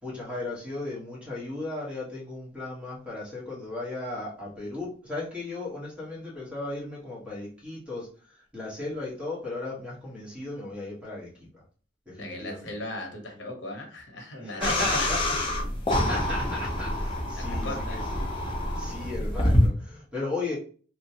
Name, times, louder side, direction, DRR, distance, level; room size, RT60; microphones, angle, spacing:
voice 1, 0.0-11.6 12.1-12.7 14.4-15.3 16.0-18.4 18.8-20.6, left 2 dB, 5° right, -5 dB, 1.2 m, -36 dB
voice 2, 12.2-15.1 17.3-18.2, left 2 dB, 80° left, 2 dB, 0.9 m, -37 dB
sound 1, 14.6-19.7, left 1 dB, 25° left, 0.6 m, -26 dB
3.0 x 2.1 x 2.8 m, 0.41 s
head